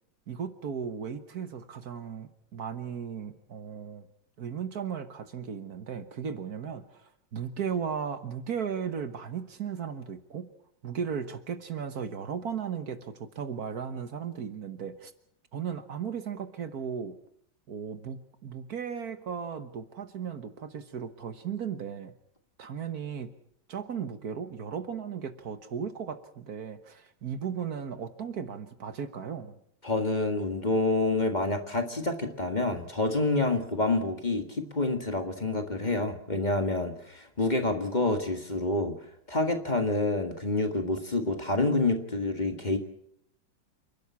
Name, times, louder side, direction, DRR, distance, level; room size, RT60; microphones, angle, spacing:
voice 1, 0.3-4.1 4.4-10.5 10.8-15.1 15.5-17.2 17.7-22.1 22.6-23.3 23.7-29.5, right 7 dB, 60° right, 10 dB, 1.6 m, -36 dB
voice 2, 29.8-38.9 39.3-42.8, left 2 dB, 25° left, 6 dB, 1.8 m, -28 dB
28.5 x 12.0 x 8.4 m, 0.71 s
omnidirectional pair, 1.9 m